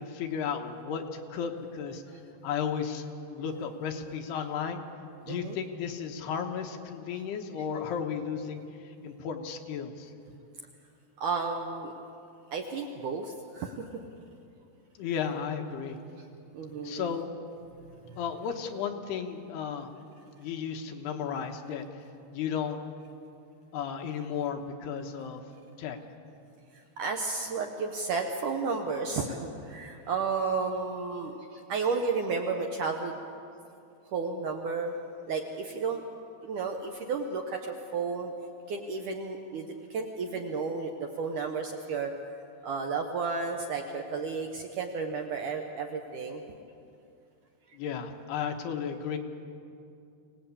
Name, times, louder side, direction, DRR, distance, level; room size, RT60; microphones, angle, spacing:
voice 1, 0.0-2.0 2.4-3.0 3.3-4.8 5.2-8.6 9.0-10.1 15.0-16.0 16.8-17.3 18.2-19.9 20.4-21.9 22.3-22.8 23.7-25.4 25.8-26.0 47.7-49.2, left 7 dB, 75° left, 4 dB, 3.2 m, -34 dB
voice 2, 5.3-5.6 11.2-11.9 12.5-13.9 16.5-17.1 18.1-18.2 27.0-33.2 34.1-34.9 35.3-36.0 36.4-38.3 38.7-42.1 42.6-46.4, right 4 dB, 70° right, 3 dB, 2.1 m, -32 dB
24.5 x 18.5 x 8.5 m, 2.6 s
omnidirectional pair, 4.9 m